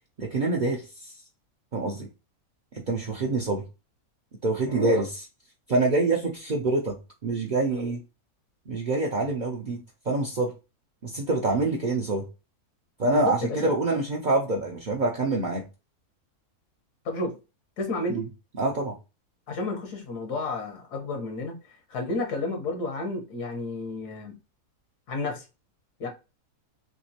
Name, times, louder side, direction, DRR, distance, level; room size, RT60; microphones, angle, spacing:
voice 1, 0.2-1.1 1.7-2.1 2.7-3.7 4.4-5.3 5.7-8.0 8.7-10.5 11.0-12.3 13.0-15.6 18.1-18.3 18.6-19.0, right 2 dB, 60° right, 0.4 m, -26 dB
voice 2, 13.1-13.7 17.0-17.3 17.8-18.2 19.5-21.5 21.9-24.4 25.1-25.4 26.0-26.1, left 2 dB, 85° left, 1.6 m, -31 dB
3.6 x 3.1 x 2.8 m
omnidirectional pair, 1.7 m